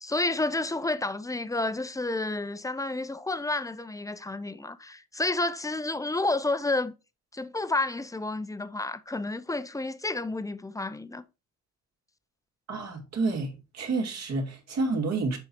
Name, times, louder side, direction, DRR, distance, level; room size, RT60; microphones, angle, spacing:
voice 1, 0.0-6.9 7.3-11.2, left 2 dB, 10° left, 0.7 m, -30 dB
voice 2, 12.7-15.4, right 3 dB, 60° right, 2.6 m, -29 dB
7.6 x 4.7 x 4.3 m
cardioid pair, 90°, 30 cm